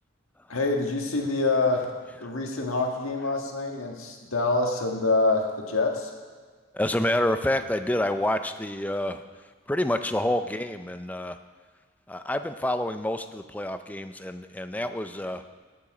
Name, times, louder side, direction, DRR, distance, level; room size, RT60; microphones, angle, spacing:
voice 1, 0.5-1.9 2.2-6.1, left 3 dB, 85° left, 2 dB, 1.7 m, -26 dB
voice 2, 6.7-9.2 9.7-11.4 12.1-15.4, left 1 dB, 5° left, 9 dB, 0.4 m, -28 dB
17.5 x 7.0 x 5.0 m, 1.5 s
head